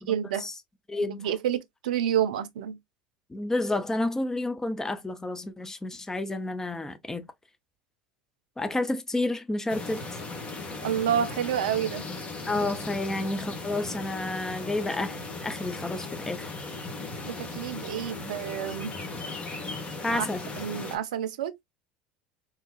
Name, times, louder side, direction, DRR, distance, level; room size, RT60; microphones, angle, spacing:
voice 1, 0.1-0.5 1.0-2.8 10.8-12.0 17.2-18.9 20.1-20.3 20.6-21.5, right 9 dB, 75° right, 0.6 m, -29 dB
voice 2, 0.9-1.3 3.3-7.3 8.6-10.0 12.5-16.6 20.0-20.4, left 2 dB, 10° left, 0.7 m, -30 dB
sound 1, 9.7-21.0, left 3 dB, 30° left, 1.4 m, -37 dB
3.9 x 2.7 x 2.4 m
hypercardioid pair, 75°, 4 cm